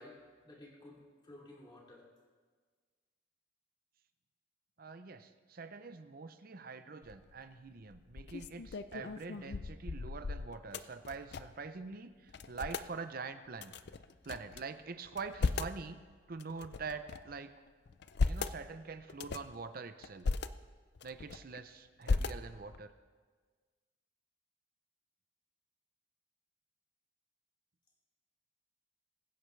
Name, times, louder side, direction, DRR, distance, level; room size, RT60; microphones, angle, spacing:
voice 1, 0.0-2.1, left 1 dB, 20° left, -3 dB, 2.7 m, -54 dB
voice 2, 4.8-13.7 14.2-16.0 16.3-17.5 18.3-20.3 21.0-22.9, right 4 dB, 45° right, 10 dB, 0.6 m, -45 dB
sound 1, 7.0-7.4 7.9-11.7 11.9-12.0 12.3-12.9 13.6-14.6 15.1-15.8 16.4-17.3 17.9-18.6 19.1-19.6 20.0-20.5 21.0-21.6 22.0-22.8, left 4 dB, 55° left, 0.5 m, -36 dB
23.0 x 10.0 x 3.3 m, 1.5 s
head